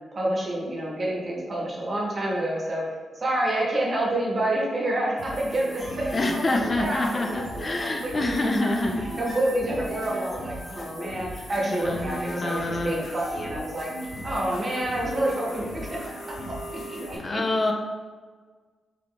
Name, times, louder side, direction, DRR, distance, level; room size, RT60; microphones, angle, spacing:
voice 1, 0.1-2.8 3.1-7.1 7.3-7.5 7.8-13.9 14.2-16.0 16.5-17.4, right 1 dB, 40° right, -3 dB, 0.9 m, -28 dB
sound 1, 5.2-17.2, equal, 60° left, 0.9 m, -38 dB
sound 2, 5.8-13.4, left 1 dB, ahead, 1.0 m, -43 dB
voice 2, 6.1-9.0 11.7-12.9 17.2-17.7, left 2 dB, 35° left, 2 dB, 0.3 m, -26 dB
3.6 x 3.4 x 2.2 m, 1.5 s
cardioid pair, 95°, 0 cm